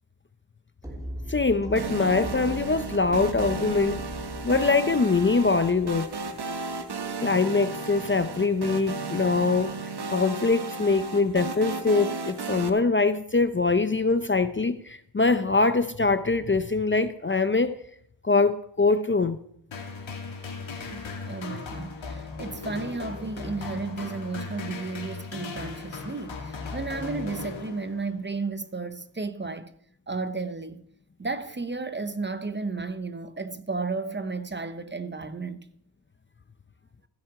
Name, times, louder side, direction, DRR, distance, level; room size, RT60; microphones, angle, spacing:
sound 1, 0.8-6.8, equal, 5° right, 2.8 m, -39 dB
voice 1, 1.3-4.1 4.4-6.1 7.2-9.7 10.1-17.8 18.2-19.4, left 3 dB, 25° left, 0.6 m, -23 dB
sound 2, 1.7-12.7, right 4 dB, 55° right, 1.2 m, -34 dB
sound 3, 19.7-28.2, left 4 dB, 75° left, 2.6 m, -37 dB
voice 2, 20.9-29.7 30.1-30.8 31.2-35.7, right 3 dB, 25° right, 0.8 m, -33 dB
15.5 x 7.6 x 4.8 m
cardioid pair, 70°, 46 cm